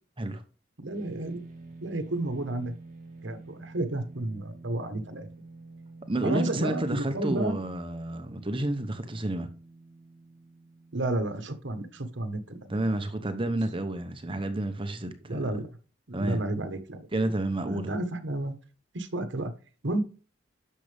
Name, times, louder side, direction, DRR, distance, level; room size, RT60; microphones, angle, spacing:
voice 1, 0.8-1.4 1.8-2.7 3.2-5.3 6.2-7.6 10.9-12.9 15.3-15.7 16.1-17.1 17.6-18.6 18.9-19.5 19.8-20.0, right 2 dB, 70° right, 1.3 m, -31 dB
sound 1, 0.9-15.4, right 3 dB, 45° right, 2.1 m, -50 dB
voice 2, 6.1-9.5 12.7-15.4 16.1-16.4 17.1-18.0, right 1 dB, 25° right, 0.9 m, -30 dB
10.0 x 6.7 x 3.5 m
head